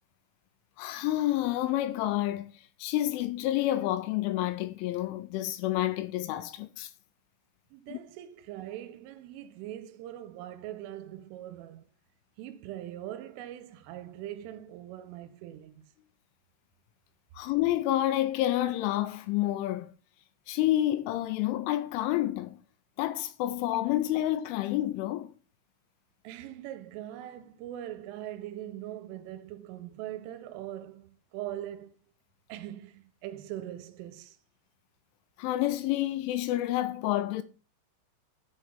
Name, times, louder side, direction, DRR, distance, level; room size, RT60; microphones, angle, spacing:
voice 1, 0.8-2.5 2.8-6.9 7.9-8.0 17.4-19.9 20.5-22.6 23.0-25.3 35.4-37.4, left 14 dB, 80° left, 3.0 m, -29 dB
voice 2, 7.7-11.9 12.4-15.8 26.2-32.0 32.5-34.4, right 12 dB, 85° right, 3.2 m, -41 dB
11.0 x 3.9 x 5.1 m
omnidirectional pair, 5.7 m